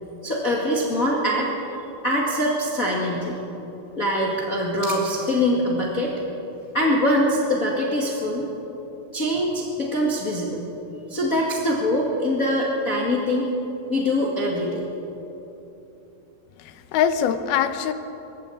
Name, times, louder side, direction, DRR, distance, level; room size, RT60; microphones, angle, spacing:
voice 1, 0.2-1.5 2.0-3.4 4.0-6.1 6.7-8.5 9.1-10.7 11.1-13.5 13.9-14.8, left 1 dB, 30° left, -4 dB, 2.0 m, -23 dB
voice 2, 16.6-17.9, left 8 dB, 85° left, 10 dB, 2.8 m, -23 dB
21.5 x 14.5 x 8.7 m, 3.0 s
omnidirectional pair, 4.3 m